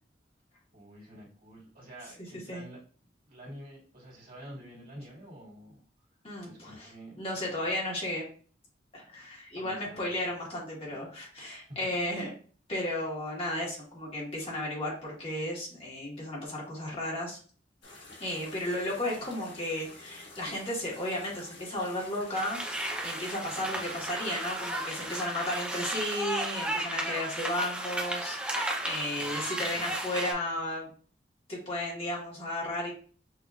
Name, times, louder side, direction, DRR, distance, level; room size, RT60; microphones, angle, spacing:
voice 1, 0.7-2.8 3.3-5.8 6.4-7.7 9.6-10.1 10.9-11.0 11.7-11.9 23.5-23.7 29.2-29.9, right 1 dB, 50° right, -4 dB, 2.2 m, -49 dB
voice 2, 6.2-6.9 7.2-8.2 8.9-12.3 12.7-17.4 18.2-30.9 31.5-32.9, left 1 dB, 35° left, -3 dB, 1.5 m, -34 dB
sound 1, 17.8-25.3, left 2 dB, 90° left, 1.6 m, -49 dB
sound 2, 22.3-30.3, right 1 dB, 5° right, 0.6 m, -34 dB
5.9 x 2.8 x 2.4 m, 0.42 s
head